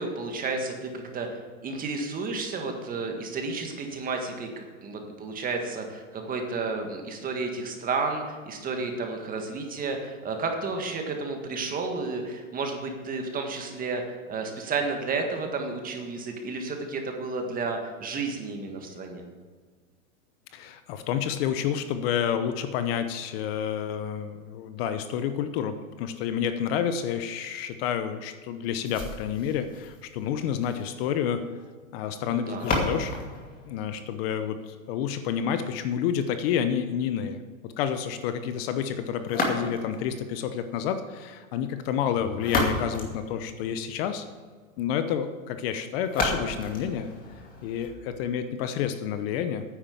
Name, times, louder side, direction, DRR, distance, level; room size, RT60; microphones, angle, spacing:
voice 1, 0.0-19.2 32.3-32.7, right 3 dB, 20° right, 3 dB, 1.8 m, -32 dB
voice 2, 20.5-31.4 31.9-33.1 33.6-34.6 34.9-44.3 44.8-47.1 47.6-49.6, left 8 dB, 45° left, 10 dB, 0.9 m, -29 dB
sound 1, 28.9-34.8 39.2-40.1 42.1-44.0 46.0-48.0, left 2 dB, 20° left, 2.4 m, -33 dB
9.8 x 8.7 x 7.0 m, 1.5 s
supercardioid pair, 140°, 40 cm